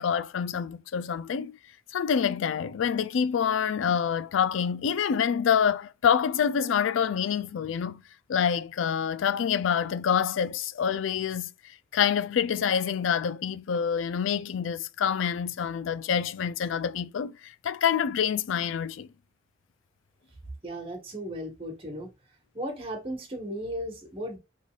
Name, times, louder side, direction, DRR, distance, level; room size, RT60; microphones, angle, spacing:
voice 1, 0.0-1.6 1.9-8.0 8.3-11.5 11.9-19.1, left 7 dB, 80° left, 0.4 m, -27 dB
voice 2, 20.6-22.1 22.5-24.4, equal, 30° right, 1.4 m, -35 dB
3.9 x 3.4 x 2.4 m
head